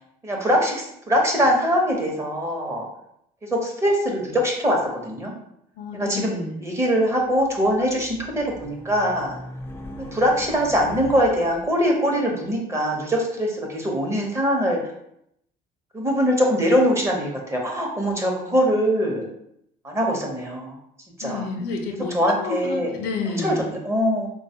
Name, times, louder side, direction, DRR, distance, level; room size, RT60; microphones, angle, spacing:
voice 1, 0.2-2.8 3.5-5.3 5.9-9.4 10.1-14.8 15.9-19.2 19.8-20.8 21.2-21.4 22.1-22.9 23.4-24.3, equal, 15° right, 0 dB, 0.8 m, -22 dB
voice 2, 5.8-6.6 21.2-23.6, left 4 dB, 85° left, 4 dB, 0.6 m, -30 dB
Race car auto racing, 7.3-11.7, left 1 dB, 15° left, 0.4 m, -40 dB
3.7 x 2.3 x 2.8 m, 0.75 s
cardioid pair, 110°, 17 cm